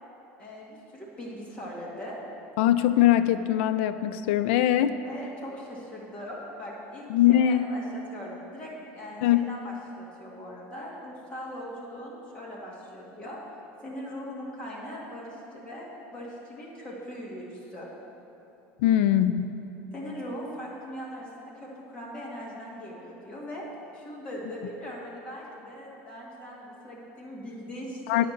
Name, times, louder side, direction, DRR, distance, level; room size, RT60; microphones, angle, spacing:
voice 1, 0.4-2.2 5.0-13.4 13.8-17.9 19.9-23.7 23.9-28.3, equal, 20° left, -5 dB, 1.9 m, -40 dB
voice 2, 2.6-5.0 7.1-7.6 9.2-9.5 18.8-19.6 28.1-28.3, left 12 dB, 85° left, 12 dB, 0.4 m, -22 dB
10.0 x 5.0 x 7.2 m, 3.0 s
cardioid pair, 160°, 6 cm